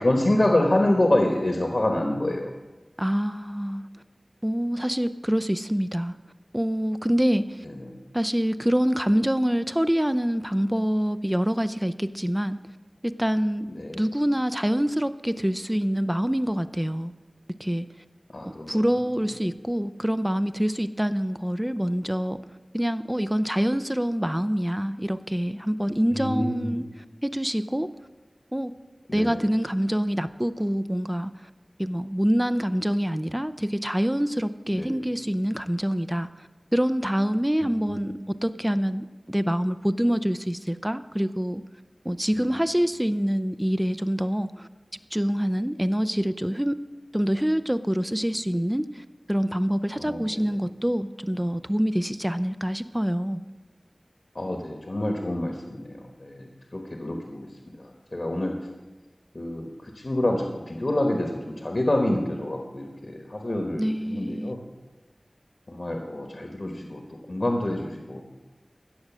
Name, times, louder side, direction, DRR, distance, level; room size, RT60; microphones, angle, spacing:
voice 1, 0.0-2.5 7.8-7.9 13.7-14.0 18.3-18.8 26.1-26.7 29.1-29.4 34.7-34.9 37.6-38.1 42.4-42.5 50.0-50.2 54.3-56.5 56.7-57.5 58.1-58.5 59.3-64.6 65.7-67.0 67.3-68.2, left 1 dB, 60° left, 2 dB, 1.3 m, -27 dB
voice 2, 3.0-3.8 4.4-6.1 6.5-7.6 8.1-12.6 13.2-13.7 13.9-17.1 17.6-17.9 18.4-22.4 22.7-27.9 28.5-28.7 29.1-31.5 31.8-36.5 36.7-41.6 42.0-44.7 45.1-46.8 47.1-53.4 63.8-64.5, equal, 10° right, 11 dB, 0.5 m, -26 dB
16.0 x 6.4 x 6.2 m, 1.2 s
wide cardioid pair, 55°, 0 cm